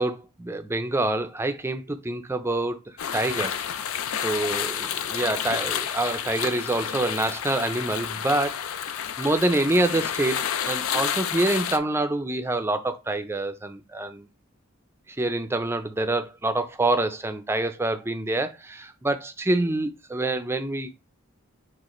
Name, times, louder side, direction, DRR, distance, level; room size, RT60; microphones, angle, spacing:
voice 1, 0.0-2.8 3.1-3.6 4.2-8.6 9.2-14.3 15.2-21.0, right 2 dB, 10° right, 0.4 m, -26 dB
sound 1, 3.0-11.8, left 9 dB, 75° left, 0.4 m, -30 dB
6.3 x 2.5 x 3.0 m
head